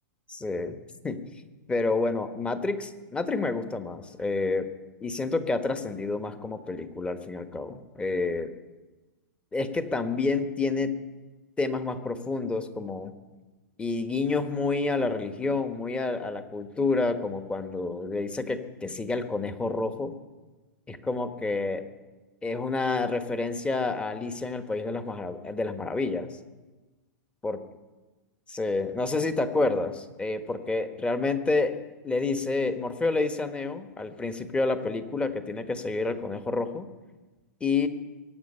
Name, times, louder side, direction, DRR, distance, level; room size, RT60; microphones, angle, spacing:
voice 1, 0.3-0.8 1.0-1.2 1.7-4.7 5.0-8.5 9.5-11.0 11.6-13.2 13.8-20.1 20.9-21.8 22.4-26.3 27.4-27.6 28.5-36.9 37.6-37.9, left 3 dB, 10° left, 9 dB, 1.2 m, -29 dB
22.5 x 9.4 x 5.6 m, 1.2 s
hypercardioid pair, 120°, 10 cm